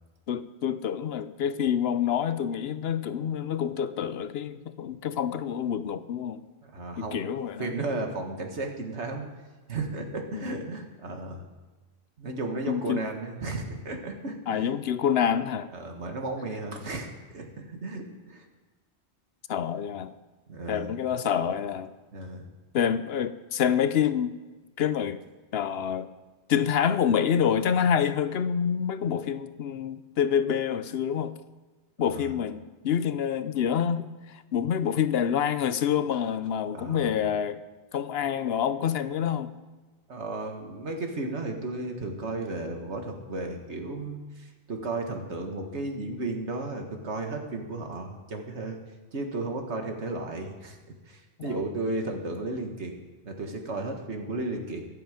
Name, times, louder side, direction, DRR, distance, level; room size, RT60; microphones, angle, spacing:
voice 1, 0.3-6.4 7.0-7.7 10.3-10.6 12.7-13.0 14.5-15.7 19.5-20.1 20.7-21.9 22.7-24.3 24.8-25.2 25.5-26.1 26.5-31.3 32.0-37.6 37.9-39.5 51.4-51.6, left 8 dB, 70° left, 13 dB, 0.8 m, -27 dB
voice 2, 6.7-7.2 7.6-9.3 9.7-11.4 12.2-14.7 15.7-18.5 20.5-20.9 22.1-22.4 32.0-32.4 36.7-37.2 40.1-48.8 49.1-50.8 51.1-53.0 53.2-54.8, right 2 dB, 85° right, 4 dB, 1.9 m, -34 dB
23.0 x 7.8 x 5.1 m, 1.3 s
omnidirectional pair, 1.1 m